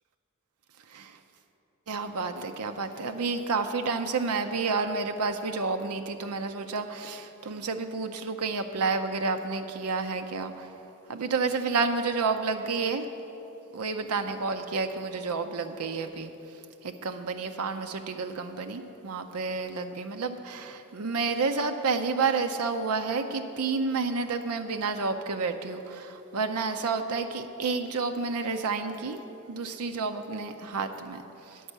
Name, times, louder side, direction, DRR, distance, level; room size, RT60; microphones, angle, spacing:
voice 1, 1.9-10.7 11.1-13.1 13.7-16.3 16.8-29.2 29.5-31.2 31.5-31.6, right 4 dB, 80° right, 7 dB, 0.5 m, -30 dB
10.0 x 5.4 x 8.0 m, 2.9 s
head